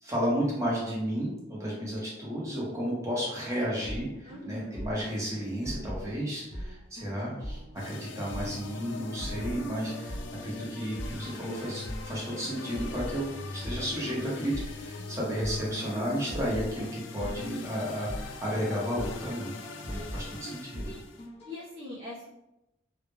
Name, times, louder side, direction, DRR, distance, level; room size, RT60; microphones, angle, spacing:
voice 1, 0.0-7.6 7.8-19.5 19.8-20.9, equal, 15° right, -5 dB, 0.7 m, -33 dB
sound 1, 3.8-21.5, equal, 30° left, 0.6 m, -41 dB
voice 2, 4.2-4.8 19.9-20.3 20.8-21.1 21.4-22.3, left 1 dB, 50° right, -8 dB, 0.7 m, -43 dB
sound 2, 7.8-21.3, left 3 dB, 70° left, 0.3 m, -42 dB
2.1 x 2.0 x 3.0 m, 0.92 s
head